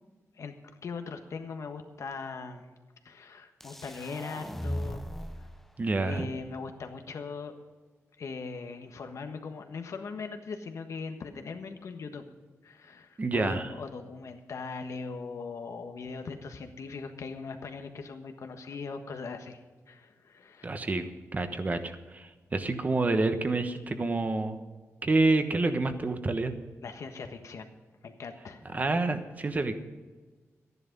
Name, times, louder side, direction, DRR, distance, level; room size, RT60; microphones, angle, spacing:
voice 1, 0.8-2.6 3.0-5.0 6.0-7.5 8.2-12.2 12.6-19.6 19.9-20.6 26.8-27.7 28.0-28.8, left 4 dB, 70° left, 6 dB, 1.4 m, -40 dB
sound 1, 3.6-5.6, equal, 5° left, 0.6 m, -37 dB
voice 2, 5.8-6.3 13.2-13.7 20.6-24.6 25.0-26.5 28.7-29.7, right 2 dB, 30° right, 8 dB, 1.1 m, -28 dB
13.0 x 11.0 x 5.4 m, 1.3 s
wide cardioid pair, 140°, 5 cm